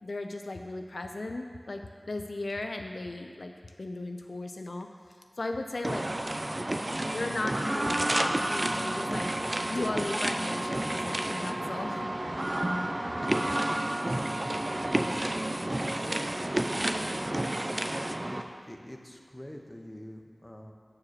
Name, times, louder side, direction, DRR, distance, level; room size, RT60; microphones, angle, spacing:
voice 1, 0.0-3.5 3.8-4.9 5.4-6.0 7.1-9.3 9.7-12.1, left 2 dB, 80° left, 4 dB, 0.4 m, -36 dB
sound 1, 5.8-18.4, right 1 dB, 35° right, 0.4 m, -30 dB
voice 2, 16.0-17.7 18.2-18.4 18.7-20.7, equal, 20° left, 2 dB, 0.8 m, -45 dB
7.2 x 4.7 x 6.4 m, 2.1 s
wide cardioid pair, 55°, 0 cm